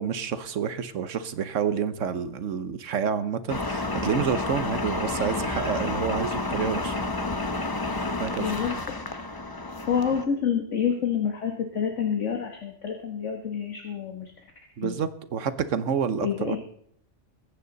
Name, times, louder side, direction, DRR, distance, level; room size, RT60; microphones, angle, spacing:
voice 1, 0.0-7.0 8.2-8.8 14.8-16.6, right 7 dB, 80° right, 12 dB, 1.3 m, -29 dB
sound 1, 3.5-10.2, left 2 dB, 20° left, 0.8 m, -30 dB
voice 2, 8.4-8.7 9.9-14.3 14.8-15.0 16.2-16.6, left 7 dB, 75° left, 3 dB, 1.7 m, -28 dB
21.5 x 9.3 x 4.0 m, 0.65 s
omnidirectional pair, 1.3 m